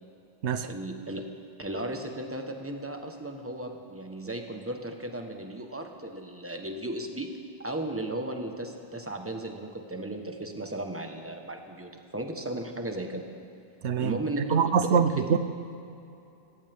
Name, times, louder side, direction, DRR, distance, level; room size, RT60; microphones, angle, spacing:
voice 1, 0.6-1.3 1.6-13.3 14.0-15.0 15.3-15.4, right 1 dB, 10° right, 4 dB, 1.2 m, -35 dB
voice 2, 13.8-14.2 14.5-15.4, right 7 dB, 80° right, 11 dB, 1.0 m, -24 dB
26.0 x 14.5 x 3.6 m, 2.8 s
omnidirectional pair, 1.1 m